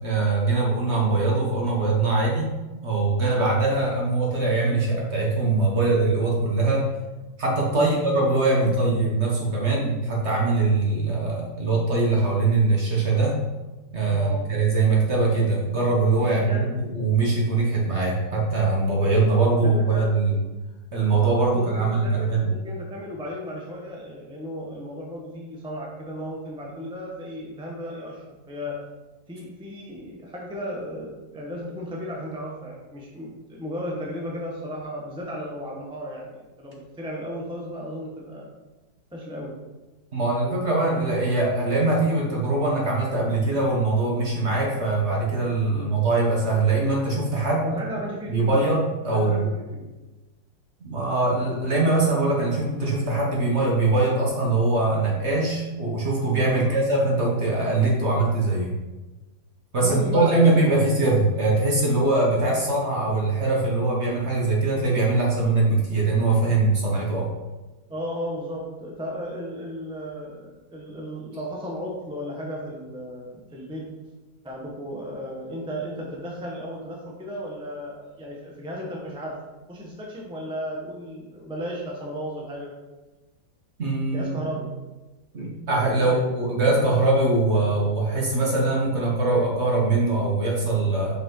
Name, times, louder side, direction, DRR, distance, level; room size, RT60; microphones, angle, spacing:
voice 1, 0.0-2.5 2.8-6.9 7.4-13.4 13.9-20.4 20.9-22.5 40.1-47.7 48.3-49.5 50.8-58.7 59.7-67.3 83.8-84.3 85.3-91.2, right 3 dB, 40° right, -3 dB, 1.2 m, -22 dB
voice 2, 7.7-8.0 8.6-8.7 14.1-14.4 16.2-16.7 19.6-20.1 21.5-28.8 29.3-38.5 39.1-39.6 45.7-46.0 47.6-48.6 49.2-49.9 56.6-56.8 59.8-60.9 67.9-73.9 74.4-79.3 79.7-82.7 84.1-84.7 86.0-86.3, equal, 5° right, -2 dB, 0.5 m, -34 dB
5.4 x 5.3 x 3.8 m, 1.1 s
omnidirectional pair, 2.1 m